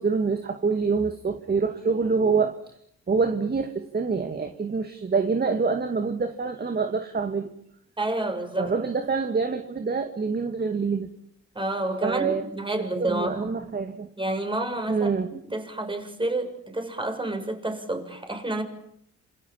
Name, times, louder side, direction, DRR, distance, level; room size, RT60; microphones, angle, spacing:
voice 1, 0.0-2.6 3.1-7.5 8.6-11.1 12.0-12.4 13.0-14.1 14.9-15.3, right 4 dB, 30° right, 2.4 m, -26 dB
voice 2, 8.0-8.7 11.6-13.5 14.2-15.1 15.4-18.6, right 2 dB, 15° right, 7.1 m, -29 dB
28.0 x 27.0 x 7.5 m
cardioid pair, 90°, 30 cm